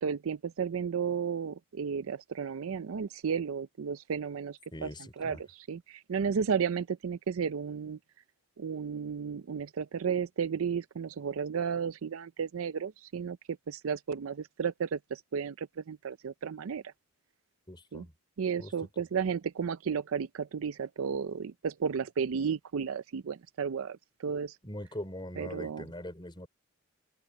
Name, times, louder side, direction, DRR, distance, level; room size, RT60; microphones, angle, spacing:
voice 1, 0.0-4.9 5.2-8.0 8.6-13.4 13.7-16.8 17.9-18.1 18.4-24.6 25.4-25.8, right 6 dB, 75° right, 0.4 m, -33 dB
voice 2, 4.7-5.4 17.7-18.1 18.6-18.7 24.6-26.5, left 1 dB, 20° left, 5.3 m, -42 dB
head